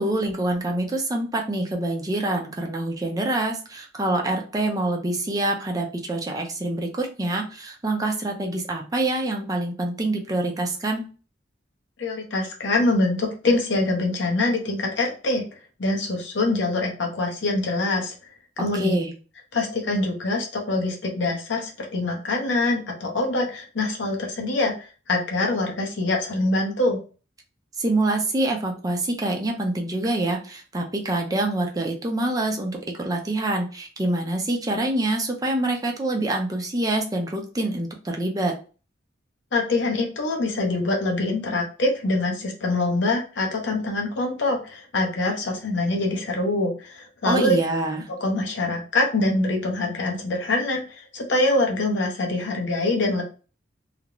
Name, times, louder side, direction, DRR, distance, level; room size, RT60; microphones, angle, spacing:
voice 1, 0.0-11.0 18.7-19.1 27.8-38.5 47.3-48.0, right 2 dB, 20° right, 1 dB, 0.5 m, -26 dB
voice 2, 12.0-15.4 15.8-18.1 18.6-18.9 19.5-24.7 25.1-27.0 39.5-47.6 48.1-53.2, left 2 dB, 70° left, 1 dB, 0.7 m, -24 dB
2.4 x 2.0 x 2.9 m, 0.36 s
head